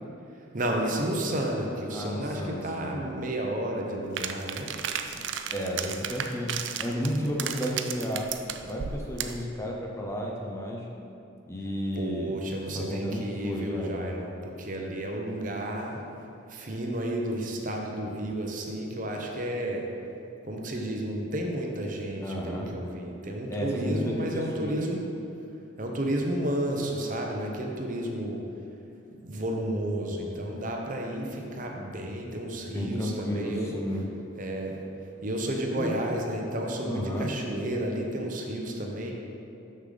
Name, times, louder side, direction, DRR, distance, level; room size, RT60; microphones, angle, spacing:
voice 1, 0.5-4.7 12.0-16.0 16.5-19.9 20.4-25.1 25.8-28.4 29.1-33.7 34.3-34.8 35.2-39.1, right 1 dB, 45° right, 1 dB, 0.7 m, -32 dB
voice 2, 1.9-2.9 5.1-5.2 5.5-6.5 6.8-8.3 8.6-10.9 11.5-12.4 12.7-13.9 22.2-22.7 23.5-24.8 32.6-34.1 35.8-35.9 36.8-37.3, equal, 15° left, -1 dB, 0.6 m, -32 dB
sound 1, 4.2-9.4, right 8 dB, 70° right, 0.4 m, -34 dB
6.7 x 6.6 x 3.9 m, 2.8 s
head